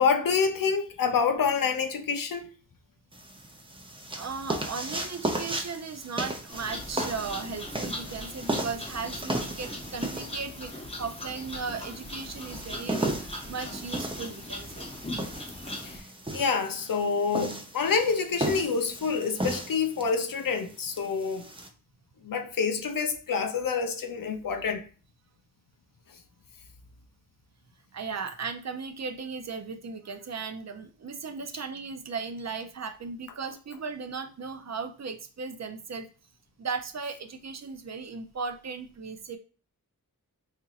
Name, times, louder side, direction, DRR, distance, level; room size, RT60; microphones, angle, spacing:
voice 1, 0.0-2.5 15.8-16.0 16.3-21.5 22.2-24.8, left 5 dB, 70° left, 0.6 m, -27 dB
sound 1, 3.1-21.7, right 1 dB, 15° right, 0.6 m, -35 dB
voice 2, 4.1-14.9 15.6-16.0 27.9-36.1 36.6-39.4, right 5 dB, 50° right, 0.6 m, -37 dB
sound 2, 6.5-16.0, left 1 dB, 15° left, 0.9 m, -40 dB
4.3 x 2.7 x 2.4 m
cardioid pair, 50°, 35 cm